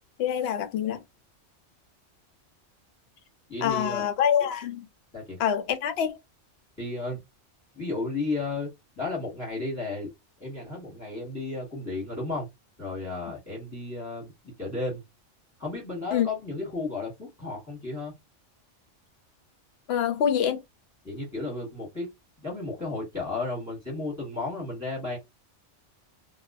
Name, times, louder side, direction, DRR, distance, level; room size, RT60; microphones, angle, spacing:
voice 1, 0.2-1.0 3.6-4.8 5.4-6.2 16.1-16.3 19.9-20.6, left 9 dB, 65° left, 0.8 m, -25 dB
voice 2, 3.5-4.0 5.1-5.4 6.8-7.2 7.7-10.1 10.4-12.5 12.8-15.0 15.6-18.1 21.0-22.1 22.4-25.2, left 3 dB, 15° left, 1.2 m, -33 dB
2.4 x 2.2 x 2.3 m
omnidirectional pair, 1.2 m